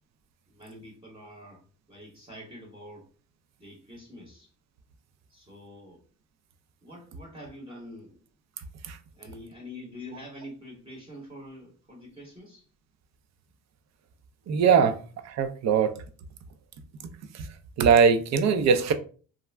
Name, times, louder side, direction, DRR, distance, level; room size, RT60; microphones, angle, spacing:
voice 1, 0.5-3.1 3.6-4.5 5.3-6.0 6.8-8.2 9.1-12.6, left 1 dB, 15° right, 0.9 m, -45 dB
voice 2, 14.5-15.0 15.2-15.9 17.3-17.5 17.8-18.9, right 6 dB, 60° right, 0.5 m, -21 dB
2.4 x 2.0 x 3.2 m
cardioid pair, 90°, 30 cm